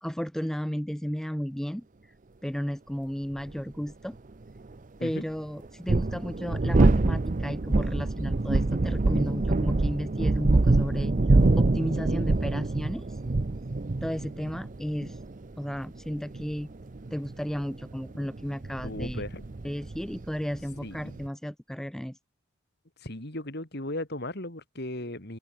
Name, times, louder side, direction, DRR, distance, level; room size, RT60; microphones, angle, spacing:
voice 1, 0.0-2.1 2.4-4.2 5.0-13.2 14.0-15.2 15.6-16.7 17.1-19.2 19.6-22.2, equal, ahead, 0.4 m, -34 dB
sound 1, 3.5-3.6 5.6-21.3, right 2 dB, 40° right, 0.6 m, -25 dB
voice 2, 18.8-19.5 20.8-21.2 23.0-25.4, left 1 dB, 50° left, 3.5 m, -36 dB
open air
head